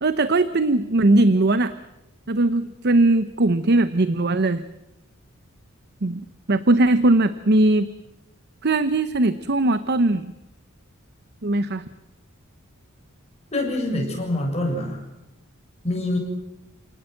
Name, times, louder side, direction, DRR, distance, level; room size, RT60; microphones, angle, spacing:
voice 1, 0.0-1.8 2.3-4.6 6.0-7.9 8.6-10.3 11.4-11.8, right 2 dB, 50° right, 13 dB, 0.9 m, -19 dB
voice 2, 13.5-15.0 15.8-16.2, left 1 dB, 30° left, 1 dB, 6.8 m, -25 dB
29.0 x 18.5 x 7.9 m, 0.93 s
head